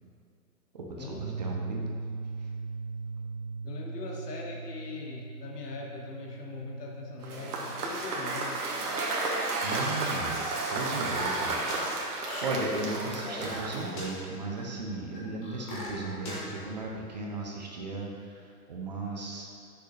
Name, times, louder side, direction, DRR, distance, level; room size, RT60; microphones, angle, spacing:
voice 1, 0.7-1.9 2.4-2.5 9.6-11.6 12.1-19.6, right 2 dB, 30° right, -1 dB, 0.5 m, -36 dB
sound 1, 1.2-7.8, right 4 dB, 45° right, 1.5 m, -39 dB
voice 2, 3.6-8.7 11.0-11.1, left 3 dB, 80° left, -1 dB, 1.6 m, -41 dB
Cheering / Applause / Crowd, 7.2-14.3, right 2 dB, 75° right, 1.6 m, -32 dB
sound 2, 10.6-11.9 12.2-13.7 13.9-14.0 14.6-14.7 15.1-16.4, left 1 dB, 20° left, 1.2 m, -40 dB
7.9 x 6.5 x 3.2 m, 2.4 s
hypercardioid pair, 160°, 46 cm